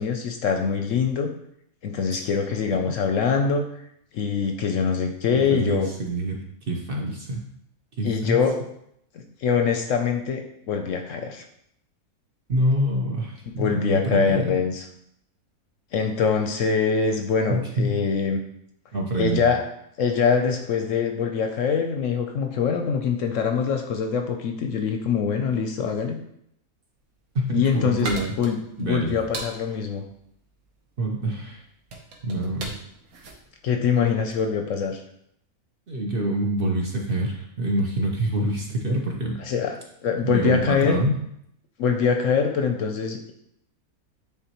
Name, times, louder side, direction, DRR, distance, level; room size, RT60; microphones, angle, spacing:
voice 1, 0.0-1.3 1.8-3.6 4.1-5.9 8.0-8.6 9.1-11.4 13.6-14.8 15.9-18.4 19.2-19.6 20.0-26.2 27.5-28.1 28.4-30.0 33.6-35.0 39.4-41.0 41.8-43.3, left 6 dB, 70° left, 4 dB, 0.8 m, -24 dB
voice 2, 5.3-6.4 6.7-7.4 8.0-8.4 12.5-14.6 17.5-18.0 18.9-19.4 27.3-28.3 28.8-29.1 31.0-31.6 32.2-32.7 35.9-39.4 40.2-41.2, right 1 dB, 45° right, -1 dB, 0.8 m, -26 dB
sound 1, 27.2-34.6, right 2 dB, 70° right, 1.3 m, -39 dB
9.3 x 3.6 x 2.9 m, 0.74 s
omnidirectional pair, 1.6 m